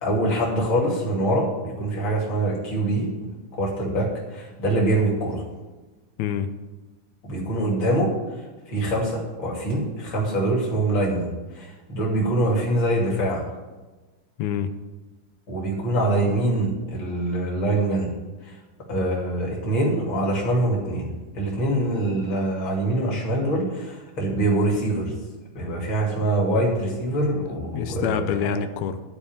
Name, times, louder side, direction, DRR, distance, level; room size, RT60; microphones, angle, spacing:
voice 1, 0.0-3.1 3.6-5.4 7.2-8.1 8.7-13.5 15.5-18.1 18.4-18.5 18.9-21.1 21.3-25.1 25.5-28.6, right 1 dB, 35° left, -2 dB, 3.0 m, -24 dB
voice 2, 6.2-6.5 14.4-14.7 27.2-27.3 27.7-29.0, left 9 dB, 90° left, 9 dB, 1.6 m, -26 dB
13.0 x 4.8 x 8.7 m, 1.2 s
omnidirectional pair, 4.1 m